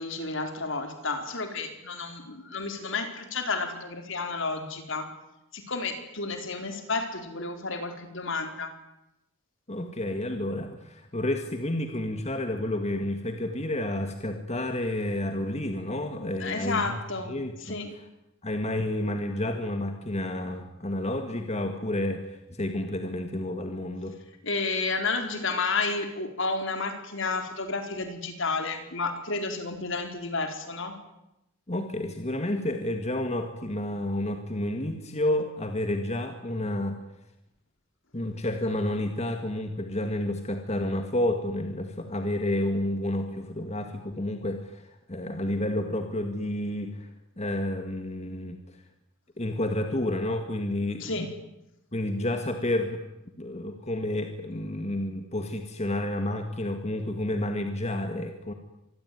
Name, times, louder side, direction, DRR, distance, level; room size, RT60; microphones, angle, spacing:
voice 1, 0.0-5.1 5.5-8.7 16.4-17.3 17.6-17.9 24.4-30.9 51.0-51.3, left 3 dB, 60° left, 6 dB, 4.4 m, -31 dB
voice 2, 9.7-17.0 17.3-17.8 18.4-24.2 31.7-37.0 38.1-47.1 47.4-48.8 49.4-51.3 51.9-53.0 53.4-58.5, left 1 dB, 30° left, 6 dB, 2.0 m, -30 dB
26.0 x 21.0 x 9.5 m, 0.90 s
head